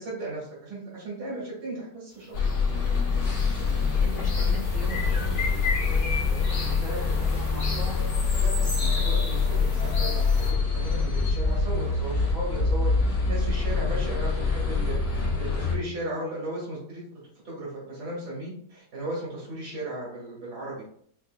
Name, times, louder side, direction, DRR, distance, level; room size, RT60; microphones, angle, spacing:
voice 1, 0.0-2.3 3.7-3.9 6.8-7.4 8.4-17.0 17.4-20.8, right 1 dB, 70° right, -6 dB, 2.3 m, -36 dB
sound 1, 2.3-15.8, left 4 dB, 65° left, 1.8 m, -25 dB
sound 2, 2.4-2.6 2.8-10.5, left 3 dB, 40° left, 1.2 m, -35 dB
voice 2, 3.5-8.0, left 1 dB, 30° right, -4 dB, 0.9 m, -41 dB
6.4 x 2.8 x 2.2 m, 0.62 s
omnidirectional pair, 1.8 m